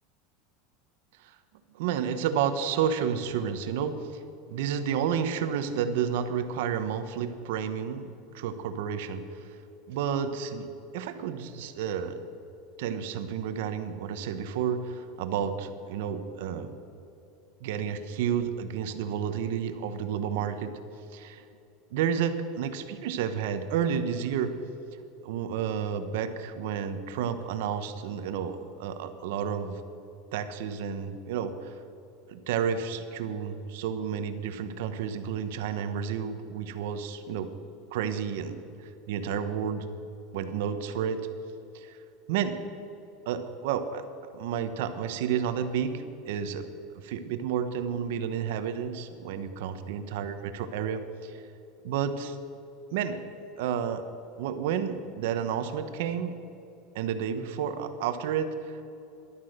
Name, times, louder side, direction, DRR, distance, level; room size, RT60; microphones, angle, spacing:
voice 1, 1.7-4.2 4.5-9.6 9.9-12.2 12.8-16.7 17.6-20.8 21.1-21.4 21.9-24.5 25.2-29.8 30.3-31.7 32.3-37.5 37.9-38.6 39.1-40.0 40.3-41.2 41.7-42.0 42.3-42.6 43.2-44.0 44.3-46.7 47.0-51.4 51.8-52.4 52.9-53.2 53.6-54.0 54.4-56.3 56.9-58.8, right 8 dB, 65° right, 9 dB, 1.1 m, -31 dB
14.0 x 11.5 x 6.6 m, 2.8 s
supercardioid pair, 180°, 0 cm